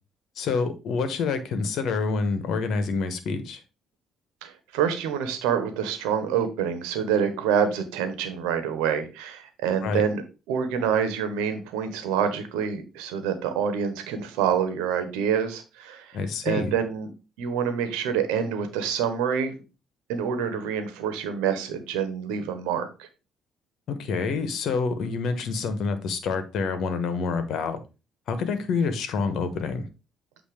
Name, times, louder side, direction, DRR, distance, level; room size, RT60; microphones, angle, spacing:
voice 1, 0.4-3.6 9.8-10.0 16.1-16.7 23.9-27.8 28.3-29.8, left 4 dB, 65° left, 1.2 m, -27 dB
voice 2, 4.4-10.2 10.5-16.2 16.4-17.1 17.4-19.6 20.1-23.1, right 7 dB, 80° right, 1.2 m, -27 dB
8.3 x 2.8 x 5.1 m
hypercardioid pair, 50°, 0 cm